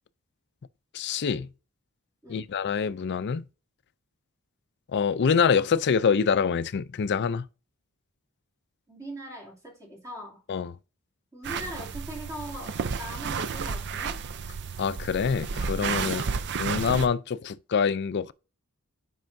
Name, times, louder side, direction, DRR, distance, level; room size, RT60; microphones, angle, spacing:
voice 1, 0.9-1.5 2.3-3.4 4.9-7.5 10.5-10.7 14.8-16.2 16.6-18.3, left 6 dB, 50° left, 0.4 m, -25 dB
voice 2, 8.9-10.4 11.3-14.2 16.0-16.5, equal, 15° right, 2.6 m, -41 dB
sound 1, 11.4-17.1, right 5 dB, 50° right, 0.5 m, -32 dB
9.1 x 5.4 x 2.6 m
head